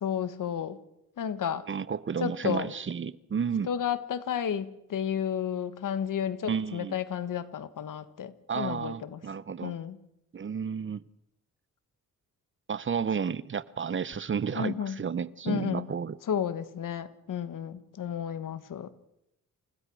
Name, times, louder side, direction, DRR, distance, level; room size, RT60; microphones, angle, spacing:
voice 1, 0.0-0.8 1.2-1.7 2.2-2.7 3.7-9.2 9.6-10.0 14.5-15.0 15.4-15.9 16.3-18.9, left 8 dB, 75° left, 1.5 m, -32 dB
voice 2, 1.7-3.7 6.5-6.9 8.5-9.8 10.3-11.0 12.7-16.2, right 6 dB, 40° right, 0.7 m, -32 dB
29.0 x 16.5 x 6.3 m
wide cardioid pair, 115°, 32 cm